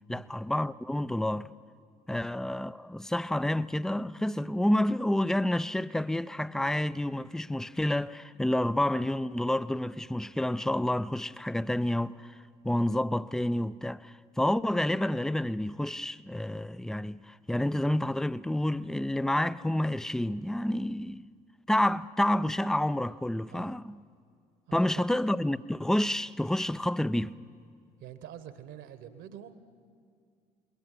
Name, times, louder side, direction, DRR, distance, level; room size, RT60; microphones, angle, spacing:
voice 1, 0.1-1.5 2.1-12.4 12.6-21.3 21.7-24.0 24.7-27.3, left 1 dB, ahead, 0.5 m, -29 dB
voice 2, 24.7-25.0 28.0-29.6, right 10 dB, 60° right, 1.5 m, -46 dB
27.5 x 21.5 x 5.8 m
figure-of-eight pair, 50°, 21 cm